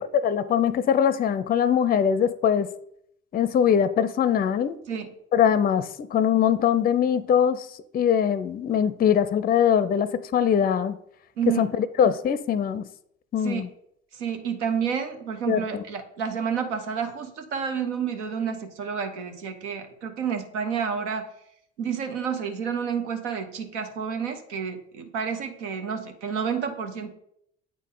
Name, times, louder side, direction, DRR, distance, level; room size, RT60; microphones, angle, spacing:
voice 1, 0.0-2.7 3.3-4.8 5.3-7.7 7.9-11.0 11.5-12.8 13.3-13.7 15.5-15.8, left 8 dB, 25° left, 0.4 m, -22 dB
voice 2, 11.4-11.7 13.4-13.7 14.1-21.3 21.8-27.1, right 7 dB, 85° right, 0.8 m, -30 dB
8.4 x 3.7 x 3.7 m
hypercardioid pair, 60°, 34 cm